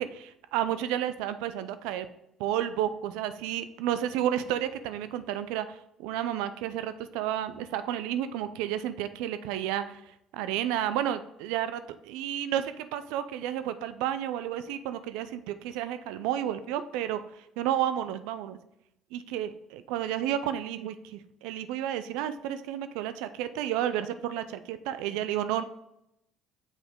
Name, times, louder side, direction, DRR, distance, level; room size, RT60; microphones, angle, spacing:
voice 1, 0.0-2.1 2.4-18.6 19.1-25.6, right 11 dB, 75° right, 11 dB, 0.4 m, -31 dB
6.5 x 4.8 x 3.5 m, 0.82 s
hypercardioid pair, 60°, 0 cm